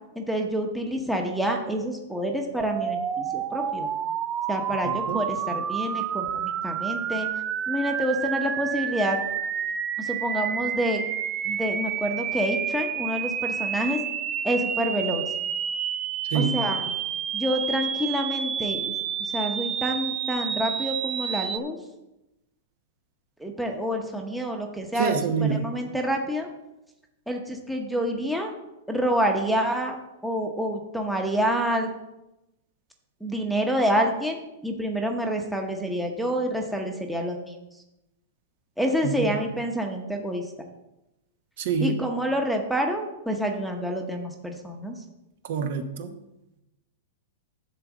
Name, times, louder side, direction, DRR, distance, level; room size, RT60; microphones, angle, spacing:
voice 1, 0.1-3.9 4.5-7.3 7.7-9.2 10.0-11.0 11.4-14.0 14.4-15.3 16.3-16.9 17.3-18.9 19.2-21.8 23.4-26.5 27.3-28.5 28.9-30.0 30.2-31.9 33.2-37.6 38.8-40.5 41.8-45.0, equal, ahead, 2 dB, 0.9 m, -27 dB
sound 1, 2.6-21.6, right 8 dB, 20° right, 0.4 m, -29 dB
voice 2, 25.0-25.6 39.0-39.3 41.6-42.0 45.4-46.1, right 6 dB, 60° right, 8 dB, 1.0 m, -26 dB
11.0 x 3.9 x 7.2 m, 0.94 s
supercardioid pair, 160°, 0 cm